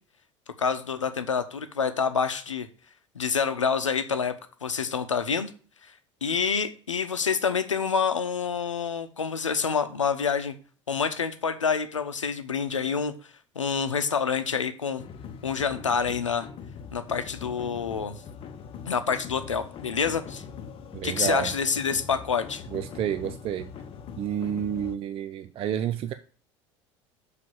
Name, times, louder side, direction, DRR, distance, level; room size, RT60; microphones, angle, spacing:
voice 1, 0.6-2.7 3.1-4.3 4.6-5.5 5.8-5.9 6.2-10.5 10.9-13.1 13.5-15.0 15.4-16.5 16.9-18.2 18.9-20.4 21.0-22.6, left 6 dB, 80° left, 0.9 m, -27 dB
sound 1, 15.0-25.0, left 6 dB, 35° left, 0.9 m, -42 dB
voice 2, 20.9-21.5 22.7-23.7 24.2-26.1, right 9 dB, 35° right, 0.6 m, -29 dB
6.8 x 5.1 x 7.0 m
figure-of-eight pair, 70°, 16 cm